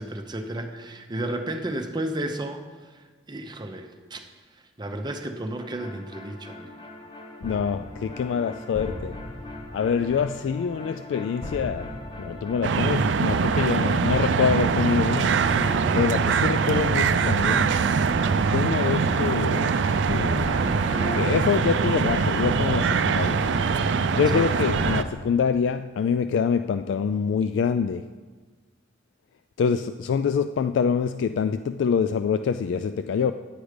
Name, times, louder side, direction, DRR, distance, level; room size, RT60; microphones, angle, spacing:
voice 1, 0.0-4.2 4.8-6.8 24.2-24.5, right 1 dB, 25° right, 0.7 m, -33 dB
sound 1, 5.6-25.0, left 1 dB, 25° left, 0.7 m, -37 dB
voice 2, 7.4-9.2 9.7-15.4 15.9-17.7 18.5-20.6 21.2-23.4 24.1-28.1 29.6-33.3, left 6 dB, 90° left, 0.3 m, -25 dB
sound 2, 12.6-25.0, right 5 dB, 80° right, 0.4 m, -23 dB
10.0 x 8.0 x 5.0 m
head